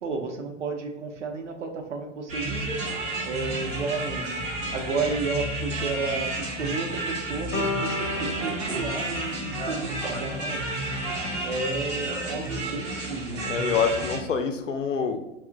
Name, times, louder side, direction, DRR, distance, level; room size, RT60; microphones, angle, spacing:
voice 1, 0.0-2.8 3.2-4.4 4.7-10.7 11.4-13.8, right 4 dB, 70° right, 3 dB, 0.6 m, -32 dB
sound 1, 2.3-14.2, right 2 dB, 20° right, 0.5 m, -31 dB
sound 2, 7.5-11.6, left 3 dB, 35° left, 0.7 m, -36 dB
voice 2, 13.4-15.2, left 6 dB, 75° left, 6 dB, 0.5 m, -26 dB
2.4 x 2.1 x 3.7 m, 0.93 s
figure-of-eight pair, 100°, 38 cm